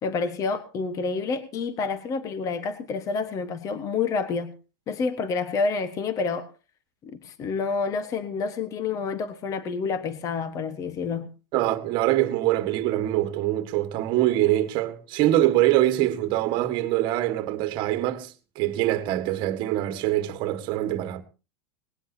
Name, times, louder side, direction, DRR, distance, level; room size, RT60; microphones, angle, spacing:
voice 1, 0.0-4.5 4.9-6.5 7.0-11.3, left 4 dB, 25° left, 1.3 m, -28 dB
voice 2, 11.5-21.2, right 14 dB, 35° right, 1.8 m, -24 dB
19.0 x 19.0 x 2.8 m
supercardioid pair, 155°, 13 cm